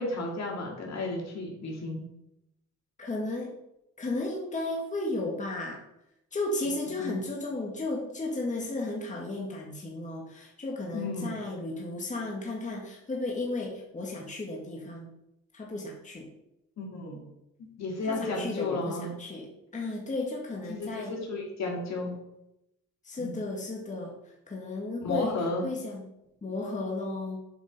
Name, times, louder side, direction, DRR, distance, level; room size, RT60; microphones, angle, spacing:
voice 1, 0.0-2.0 7.0-7.2 10.9-11.3 16.8-17.2 17.8-19.1 20.7-22.1 23.2-23.3 25.0-25.7, left 2 dB, 60° left, -1 dB, 2.6 m, -33 dB
voice 2, 3.0-3.5 4.0-5.8 6.3-15.1 15.5-16.3 18.0-21.2 23.0-26.1 26.4-27.4, left 2 dB, 25° left, -2 dB, 1.8 m, -34 dB
7.8 x 5.1 x 5.4 m, 0.85 s
cardioid pair, 90°, 30 cm